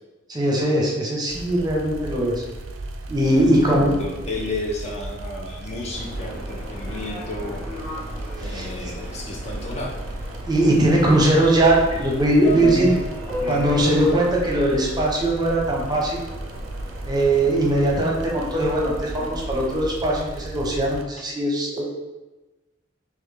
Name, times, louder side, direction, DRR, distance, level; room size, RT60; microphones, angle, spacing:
voice 1, 0.3-2.4 3.1-3.9 8.4-8.9 10.5-12.9 13.5-16.2 17.0-21.9, right 1 dB, 20° right, -2 dB, 0.7 m, -20 dB
sound 1, 1.3-21.0, right 2 dB, 80° right, 0.4 m, -36 dB
voice 2, 3.2-7.7 8.4-10.0 12.5-13.0 13.4-13.9, left 2 dB, 35° left, -1 dB, 0.6 m, -32 dB
Subway metro underground, 5.9-19.7, equal, 10° left, 1.2 m, -35 dB
3.9 x 3.1 x 3.4 m, 1.1 s
head